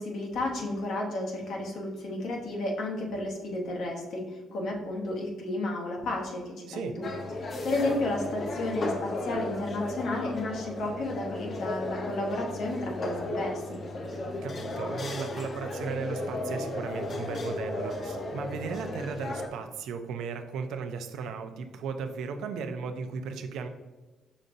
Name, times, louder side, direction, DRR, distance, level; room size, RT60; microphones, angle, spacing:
voice 1, 0.0-7.1 7.4-13.8, left 2 dB, 70° left, 0 dB, 0.9 m, -32 dB
voice 2, 6.7-7.0 14.4-23.7, right 5 dB, 85° right, 7 dB, 0.4 m, -36 dB
sound 1, 7.0-19.5, left 2 dB, 45° left, 0.6 m, -34 dB
5.2 x 3.9 x 2.6 m, 1.2 s
cardioid pair, 90°, 0 cm